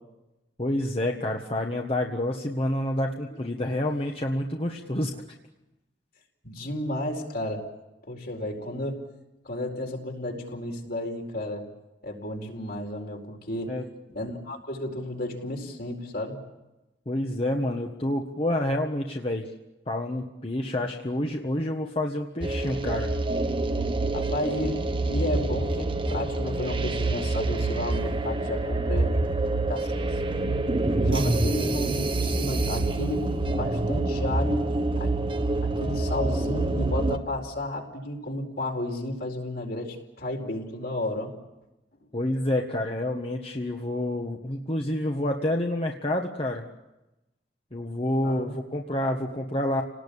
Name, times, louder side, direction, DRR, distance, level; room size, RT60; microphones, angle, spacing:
voice 1, 0.6-5.1 13.7-13.8 17.0-19.5 19.9-23.1 42.1-46.6 47.7-49.8, left 1 dB, 35° left, 2 dB, 1.5 m, -28 dB
voice 2, 6.4-7.6 8.1-9.0 9.4-11.7 12.0-13.7 14.1-16.4 24.1-24.8 25.1-29.2 29.7-30.6 31.0-34.6 35.0-35.1 35.6-41.3 48.2-48.6, left 1 dB, 60° left, 2 dB, 4.6 m, -32 dB
sound 1, 22.4-37.2, right 2 dB, 30° right, 1.3 m, -26 dB
30.0 x 19.0 x 8.8 m, 0.98 s
head